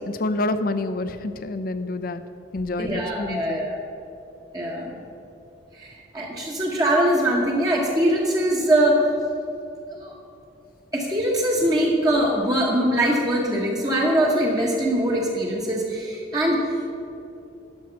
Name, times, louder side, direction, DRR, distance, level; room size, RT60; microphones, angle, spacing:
voice 1, 0.1-2.2 2.5-3.7, left 2 dB, 50° left, 11 dB, 0.5 m, -28 dB
voice 2, 2.8-3.8 4.5-5.0 5.8-9.1 10.0-10.1 10.9-16.6, right 1 dB, 20° right, -3 dB, 1.0 m, -22 dB
11.5 x 6.4 x 5.7 m, 2.8 s
head